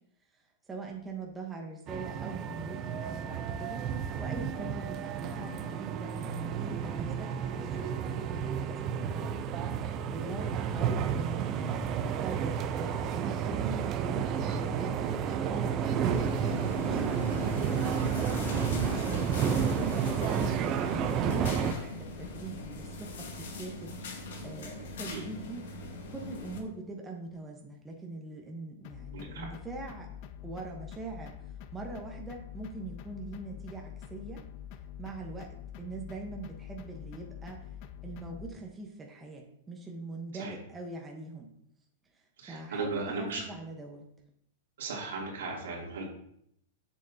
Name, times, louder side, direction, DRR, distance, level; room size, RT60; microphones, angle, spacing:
voice 1, 0.7-3.9 4.2-9.3 9.7-15.1 15.5-25.7 26.1-30.1 30.4-34.4 35.0-37.7 38.0-41.5 42.1-42.2 42.5-44.1, right 3 dB, 15° right, 0 dB, 1.0 m, -42 dB
sound 1, 1.9-21.7, right 7 dB, 35° right, 0.5 m, -31 dB
sound 2, 16.0-26.6, left 3 dB, 75° left, 1.4 m, -40 dB
sound 3, 28.8-38.5, left 9 dB, 45° left, 0.4 m, -45 dB
voice 2, 29.1-29.5 40.4-40.6 42.4-43.4 44.8-46.1, right 3 dB, 80° right, -3 dB, 2.7 m, -36 dB
6.9 x 6.4 x 2.8 m, 0.73 s
hypercardioid pair, 130°, 0 cm